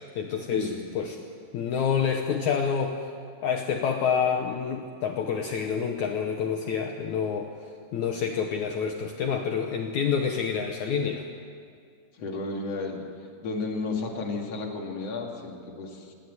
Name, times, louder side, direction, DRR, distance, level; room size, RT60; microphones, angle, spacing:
voice 1, 0.2-1.3 1.5-3.0 3.4-7.5 7.9-11.2, left 6 dB, 75° left, 3 dB, 1.8 m, -28 dB
voice 2, 12.1-13.0 13.4-16.1, left 3 dB, 45° left, 0 dB, 2.9 m, -32 dB
26.5 x 10.5 x 9.5 m, 2.3 s
omnidirectional pair, 4.5 m